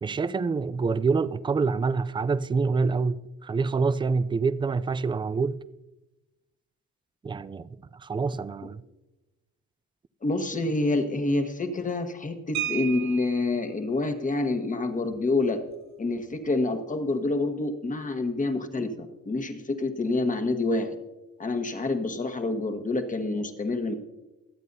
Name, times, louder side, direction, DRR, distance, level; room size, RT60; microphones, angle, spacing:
voice 1, 0.0-5.6 7.2-7.7 8.0-8.8, right 4 dB, 15° right, 0.3 m, -26 dB
voice 2, 10.2-15.6 16.0-21.0 21.4-23.9, left 2 dB, 25° left, 1.3 m, -27 dB
sound 1, 12.5-13.6 15.1-15.2 15.5-15.7 16.1-16.4, right 12 dB, 65° right, 0.7 m, -34 dB
23.5 x 8.2 x 2.7 m
cardioid pair, 90°, 30 cm